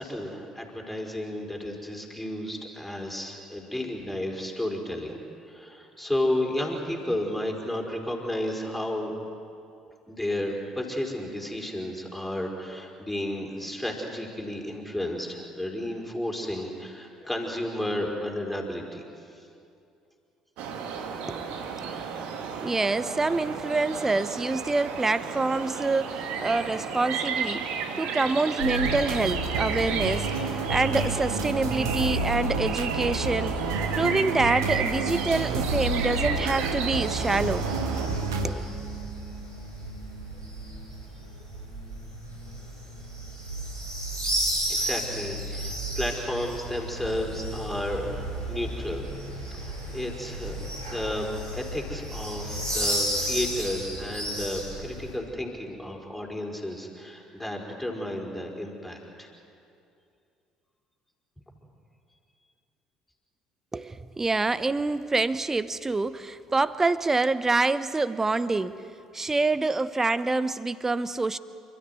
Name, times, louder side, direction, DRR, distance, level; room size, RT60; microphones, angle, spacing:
voice 1, 0.0-5.2 5.5-9.1 10.1-19.1 44.7-49.1 49.5-59.3, left 1 dB, 5° left, 0 dB, 4.9 m, -32 dB
sound 1, 20.6-38.1, right 6 dB, 55° right, 2.0 m, -33 dB
voice 2, 22.6-27.6 28.0-33.5 34.0-37.7 38.4-38.6 63.7-68.8 69.1-71.4, right 3 dB, 20° right, 16 dB, 0.9 m, -26 dB
sound 2, 28.6-38.5, right 3 dB, 70° right, 1.9 m, -29 dB
sound 3, 36.9-55.1, right 1 dB, 90° right, 4.5 m, -34 dB
29.0 x 13.5 x 9.8 m, 2.5 s
figure-of-eight pair, 55°, 2 cm